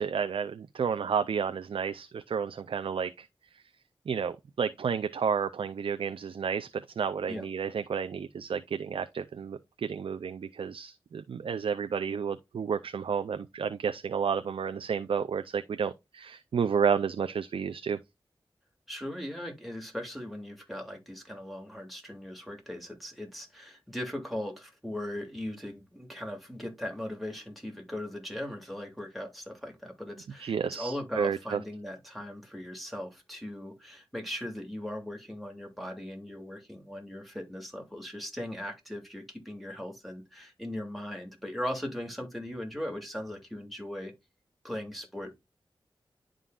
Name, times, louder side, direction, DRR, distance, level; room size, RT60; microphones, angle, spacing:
voice 1, 0.0-3.3 4.1-6.7 7.0-18.0 30.4-31.6, right 6 dB, 75° right, 0.4 m, -31 dB
voice 2, 18.9-44.1 44.6-45.3, left 1 dB, ahead, 2.2 m, -39 dB
11.0 x 3.8 x 2.4 m
wide cardioid pair, 70°, 9 cm